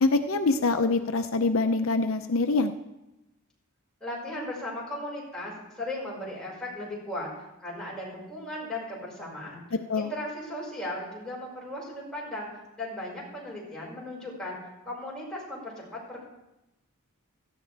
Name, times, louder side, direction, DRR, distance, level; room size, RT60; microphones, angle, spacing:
voice 1, 0.0-2.7 9.9-10.1, left 3 dB, 70° left, 7 dB, 0.6 m, -24 dB
voice 2, 4.0-7.3 7.6-9.6 9.9-12.5 12.8-14.6 14.8-16.2, left 1 dB, 5° left, -6 dB, 5.3 m, -36 dB
17.5 x 14.0 x 3.4 m, 0.95 s
head